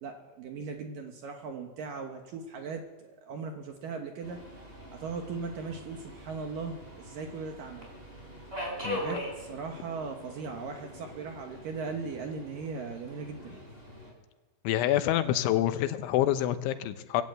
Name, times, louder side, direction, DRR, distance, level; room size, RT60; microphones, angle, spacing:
voice 1, 0.0-4.4 4.9-7.9 8.9-13.6, right 4 dB, 65° right, 4 dB, 2.3 m, -38 dB
Subway metro underground, 4.2-14.1, equal, 15° right, 4.5 m, -42 dB
voice 2, 14.6-17.2, left 12 dB, 85° left, 9 dB, 3.5 m, -27 dB
20.5 x 17.0 x 8.0 m, 1.2 s
omnidirectional pair, 5.3 m